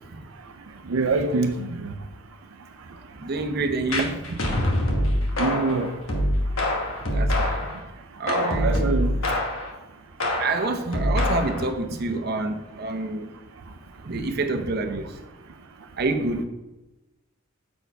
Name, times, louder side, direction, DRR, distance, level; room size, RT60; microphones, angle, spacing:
voice 1, 0.9-1.9 5.4-5.9 8.6-9.1, right 3 dB, 80° right, 6 dB, 0.5 m, -24 dB
voice 2, 3.2-4.2 7.1-7.6 8.2-9.3 10.4-13.3 14.0-15.1 16.0-16.4, right 3 dB, 50° right, 5 dB, 0.7 m, -27 dB
sound 1, 3.9-7.8 8.3-9.7 10.2-11.7, left 1 dB, 80° left, 1.3 m, -24 dB
6.8 x 4.4 x 4.6 m, 1.0 s
head